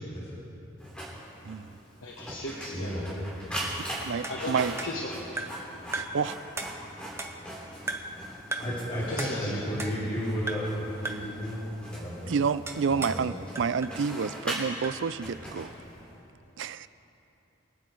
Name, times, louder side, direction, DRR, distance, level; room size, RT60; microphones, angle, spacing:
Printer, 0.8-16.2, right 1 dB, 5° left, 3.0 m, -41 dB
voice 1, 1.4-1.8 4.0-4.7 5.9-6.4 12.3-15.7 16.6-16.9, right 6 dB, 70° right, 15 dB, 0.4 m, -29 dB
voice 2, 2.0-3.5 4.3-5.5 9.1-9.6, left 1 dB, 85° left, -2 dB, 1.3 m, -37 dB
voice 3, 2.7-3.1 8.6-11.6 11.9-12.3 13.1-13.2, equal, 35° left, -9 dB, 3.2 m, -32 dB
sound 1, 4.2-5.7 5.9-6.3 6.6-7.5 7.9-8.2 8.5-8.8 9.2-10.2 10.5-10.8 11.1-11.4 12.7-13.3 13.6-15.0, right 2 dB, 15° right, 0.7 m, -37 dB
24.5 x 8.8 x 4.7 m, 3.0 s
head